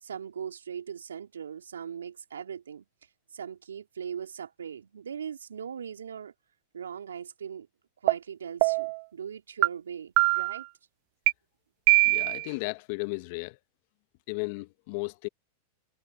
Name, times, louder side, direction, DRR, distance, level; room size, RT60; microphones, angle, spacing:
voice 1, 0.0-2.9 3.3-6.3 6.7-7.7 8.0-10.7, right 8 dB, 85° right, 3.7 m, -39 dB
sound 1, 8.1-8.2 8.6-9.0 9.6-9.7 10.2-10.6 11.3-11.4 11.9-12.5, right 31 dB, 55° right, 0.4 m, -22 dB
voice 2, 12.0-13.6 14.3-15.3, left 28 dB, 55° left, 1.3 m, -34 dB
hypercardioid pair, 100°, 0 cm